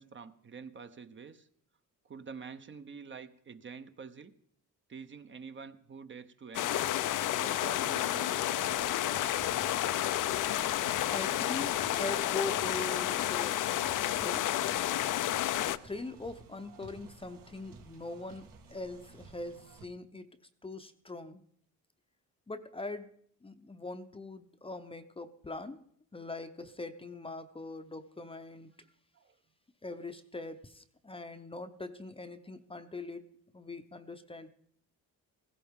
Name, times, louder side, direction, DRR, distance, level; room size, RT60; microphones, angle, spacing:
voice 1, 0.0-1.5 2.0-4.3 4.9-6.9 7.4-8.8 29.1-29.4, right 5 dB, 35° right, 9 dB, 0.8 m, -47 dB
sound 1, 6.5-15.8, left 13 dB, 65° left, 0.6 m, -31 dB
sound 2, 8.6-19.8, right 4 dB, 70° right, 1.9 m, -54 dB
voice 2, 11.1-13.6 14.2-14.5 15.6-20.3 20.6-21.4 22.5-25.8 26.1-28.7 29.8-33.3 33.5-34.5, left 2 dB, 15° left, 9 dB, 0.7 m, -42 dB
16.5 x 16.0 x 3.6 m, 0.65 s
cardioid pair, 105°, 34 cm